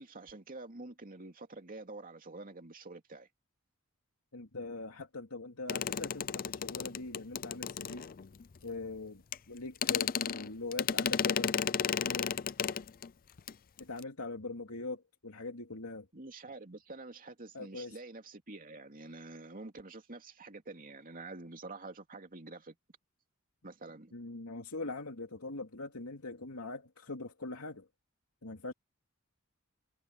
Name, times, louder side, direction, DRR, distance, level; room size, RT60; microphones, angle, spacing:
voice 1, 0.0-3.3 16.1-22.7 23.6-24.1, right 2 dB, 40° right, 2.6 m, -47 dB
voice 2, 4.3-8.1 8.6-11.5 11.9-12.4 13.8-16.1 17.5-18.0 24.1-27.9 28.4-28.7, left 3 dB, 85° left, 2.7 m, -42 dB
sound 1, 5.7-8.4 9.3-9.4 9.8-13.1 13.4-13.5 13.8-14.0, left 8 dB, 40° left, 0.5 m, -33 dB
head